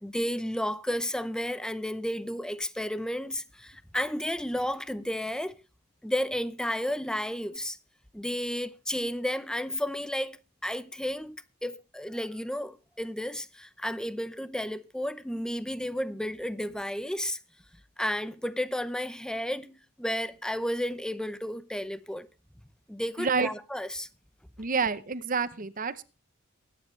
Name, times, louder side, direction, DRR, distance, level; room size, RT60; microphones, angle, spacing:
voice 1, 0.0-5.5 6.0-7.8 8.1-17.4 18.0-22.3 22.9-24.1, equal, 5° left, 0.6 m, -32 dB
voice 2, 23.2-23.5 24.6-26.0, right 5 dB, 40° right, 0.8 m, -28 dB
22.5 x 10.0 x 3.2 m
head